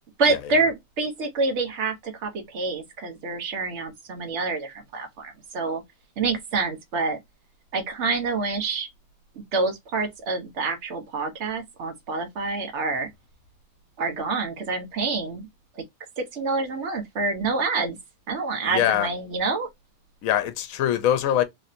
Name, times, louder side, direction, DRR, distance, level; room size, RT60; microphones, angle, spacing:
voice 1, 0.2-5.8 6.2-7.2 7.7-8.9 9.5-13.1 14.0-15.5 15.8-15.9 16.2-18.0 18.3-19.7, right 3 dB, 55° right, 1.1 m, -27 dB
voice 2, 18.6-19.1 20.2-21.4, left 11 dB, 75° left, 1.0 m, -23 dB
3.2 x 2.7 x 2.4 m
omnidirectional pair, 1.5 m